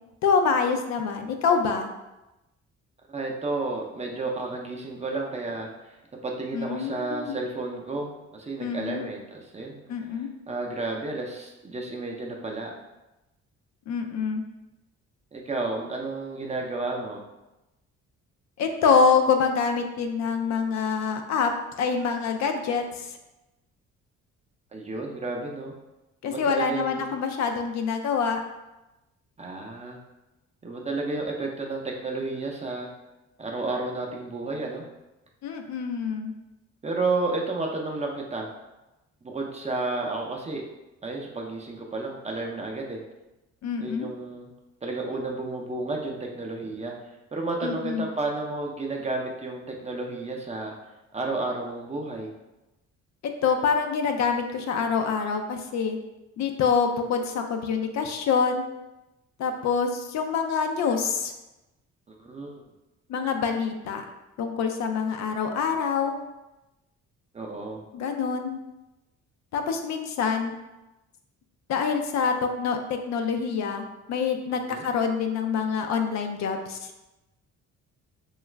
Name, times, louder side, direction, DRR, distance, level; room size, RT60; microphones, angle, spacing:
voice 1, 0.2-1.9 6.5-7.4 8.6-9.0 9.9-10.3 13.9-14.4 18.6-21.5 21.8-23.1 26.2-28.4 35.4-36.3 43.6-44.1 47.6-48.1 53.4-56.0 56.4-58.7 59.4-61.3 63.1-64.0 64.4-66.2 67.9-68.6 69.5-70.6 71.7-73.8 74.1-76.8, left 5 dB, 65° left, 5 dB, 0.4 m, -26 dB
voice 2, 3.1-6.0 6.2-9.8 10.5-12.7 15.3-17.2 24.7-25.7 26.2-27.1 29.4-30.0 30.6-32.9 33.4-34.8 36.8-38.5 39.2-40.6 41.0-43.0 43.8-44.5 44.8-46.9 47.3-50.7 51.1-52.3 62.1-62.6 67.3-67.8 74.7-74.8, right 3 dB, 20° right, 0 dB, 0.5 m, -31 dB
2.9 x 2.4 x 3.2 m, 0.99 s
cardioid pair, 90°, 30 cm